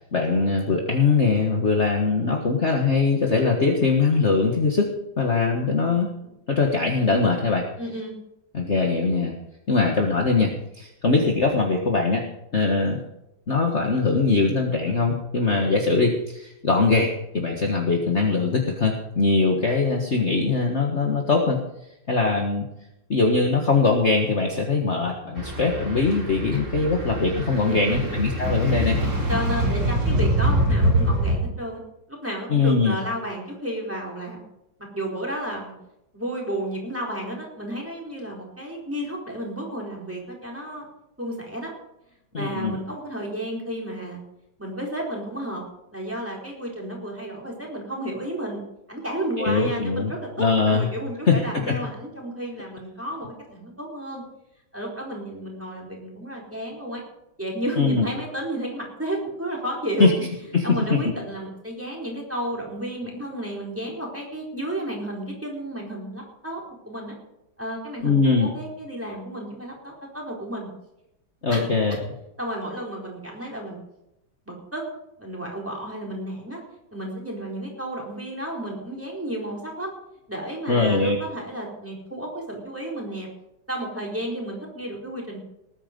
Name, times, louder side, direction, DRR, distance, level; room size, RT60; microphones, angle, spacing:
voice 1, 0.1-6.1 6.5-7.7 8.5-9.3 9.7-12.3 12.5-13.0 13.5-21.6 22.1-22.6 23.1-29.0 32.5-33.0 42.3-42.8 49.4-50.1 50.4-50.9 51.3-51.4 51.7-51.8 57.8-58.0 60.0-60.1 60.5-61.0 68.0-68.5 71.4-72.0 80.7-81.2, left 4 dB, 35° left, 2 dB, 1.8 m, -21 dB
voice 2, 7.8-8.1 27.6-28.2 29.3-31.8 32.1-34.4 34.9-35.7 36.1-40.9 41.2-41.7 42.3-44.2 44.6-45.6 45.9-48.6 48.9-54.2 54.7-57.0 57.4-60.1 60.6-67.1 67.6-70.7 71.5-71.7 72.4-73.8 74.5-74.8 75.2-76.6 76.9-79.9 80.3-83.3 83.7-85.4, right 1 dB, 5° right, -1 dB, 4.3 m, -32 dB
sound 1, 25.4-31.4, right 1 dB, 40° right, 3.4 m, -24 dB
19.5 x 9.9 x 5.3 m, 0.86 s
omnidirectional pair, 2.1 m